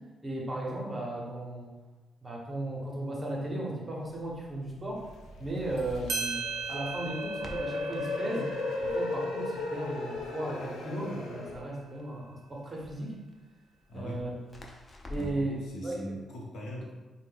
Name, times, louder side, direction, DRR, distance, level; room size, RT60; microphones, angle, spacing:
voice 1, 0.2-1.7 2.2-5.1 5.4-8.5 8.8-13.1 13.9-14.4 15.1-15.5 15.8-16.0, right 1 dB, 20° right, -2 dB, 0.7 m, -35 dB
Crackle, 4.0-15.5, left 1 dB, 20° left, 0.4 m, -51 dB
sound 1, 5.0-11.6, left 3 dB, 80° left, 0.4 m, -36 dB
sound 2, 5.8-5.9 6.1-11.2, right 4 dB, 90° right, 0.5 m, -39 dB
voice 2, 13.9-14.2 15.1-16.9, equal, 65° left, -2 dB, 0.8 m, -40 dB
3.6 x 2.1 x 3.8 m, 1.2 s
wide cardioid pair, 155°, 0 cm